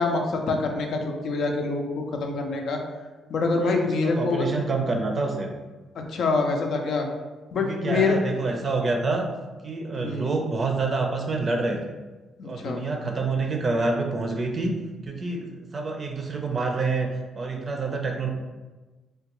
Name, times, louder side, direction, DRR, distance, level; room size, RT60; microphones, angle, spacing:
voice 1, 0.0-2.8 3.3-4.5 6.1-7.1 7.5-8.2 9.9-10.4 12.4-12.8, left 3 dB, 65° left, 3 dB, 0.4 m, -25 dB
voice 2, 3.6-5.5 7.6-9.3 9.6-11.9 12.4-14.7 15.1-18.3, right 3 dB, 40° right, 3 dB, 0.5 m, -27 dB
3.5 x 2.3 x 2.9 m, 1.2 s
cardioid pair, 90°, 0 cm